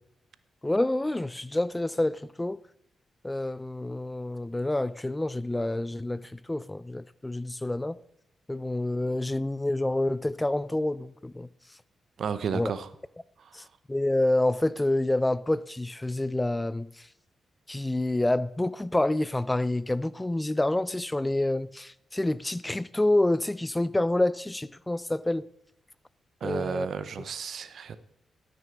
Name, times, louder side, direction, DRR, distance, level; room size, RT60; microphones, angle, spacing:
voice 1, 0.6-2.6 3.2-8.0 8.5-11.5 12.5-12.7 13.5-16.9 17.7-25.5 26.4-26.9, left 1 dB, 15° left, 0.4 m, -28 dB
voice 2, 12.2-12.9 13.4-13.6 26.4-28.0, right 6 dB, 70° right, 0.6 m, -33 dB
12.5 x 6.2 x 5.1 m
supercardioid pair, 55°, 0 cm